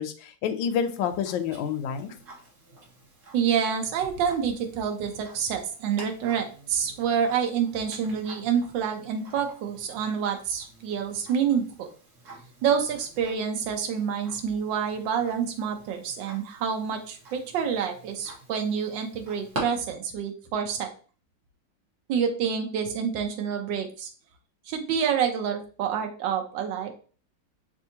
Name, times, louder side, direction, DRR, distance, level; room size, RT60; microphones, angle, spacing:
voice 1, 0.0-2.1, left 7 dB, 75° left, 7 dB, 1.3 m, -28 dB
Tick-tock, 0.7-19.6, right 2 dB, 55° right, 1.8 m, -46 dB
voice 2, 3.3-11.9 12.6-20.9 22.1-24.1 24.7-26.9, right 7 dB, 70° right, 4 dB, 1.4 m, -28 dB
6.1 x 2.7 x 2.8 m, 0.39 s
omnidirectional pair, 2.2 m